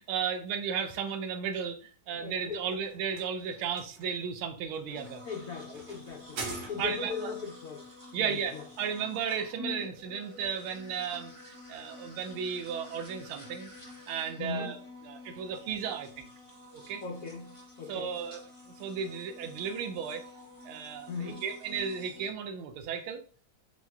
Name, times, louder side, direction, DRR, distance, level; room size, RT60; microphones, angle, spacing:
voice 1, 0.0-5.2 6.8-7.3 8.1-13.7 14.1-14.8 15.0-16.3 16.7-17.0 17.9-18.4 18.8-20.3 20.6-23.2, right 7 dB, 85° right, 1.5 m, -34 dB
voice 2, 2.1-2.6 5.2-6.4 6.7-7.8 8.2-8.6 14.4-14.7 17.0-18.1 21.1-21.4, left 5 dB, 80° left, 0.7 m, -38 dB
sound 1, 2.1-7.2, right 3 dB, 65° right, 1.5 m, -45 dB
sound 2, 4.9-22.3, left 2 dB, 45° right, 0.4 m, -48 dB
4.5 x 4.1 x 2.3 m
omnidirectional pair, 2.2 m